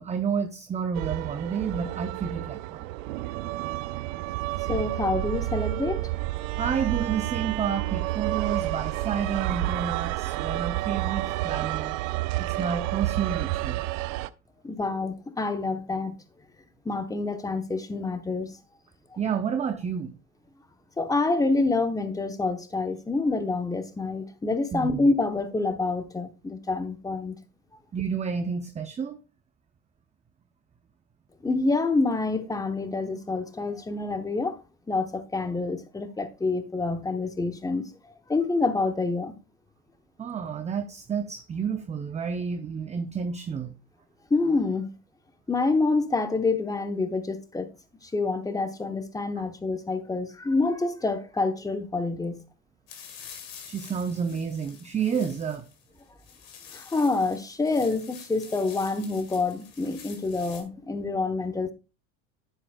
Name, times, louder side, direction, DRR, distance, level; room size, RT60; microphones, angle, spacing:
voice 1, 0.0-2.9 6.6-12.0 12.4-13.8 19.2-20.1 24.7-25.1 27.9-29.2 40.2-43.7 53.6-55.6, right 6 dB, 15° right, 0.6 m, -30 dB
sound 1, 0.9-14.3, right 17 dB, 70° right, 0.6 m, -30 dB
voice 2, 4.7-6.1 14.6-16.1 16.8-18.5 21.0-27.3 31.4-34.6 34.9-37.9 38.3-39.3 44.3-44.9 45.5-47.7 48.0-52.4 56.7-61.7, left 3 dB, 10° left, 0.9 m, -27 dB
sound 2, 52.9-60.6, left 8 dB, 80° left, 2.3 m, -47 dB
9.7 x 8.0 x 2.3 m
supercardioid pair, 100°, 40 cm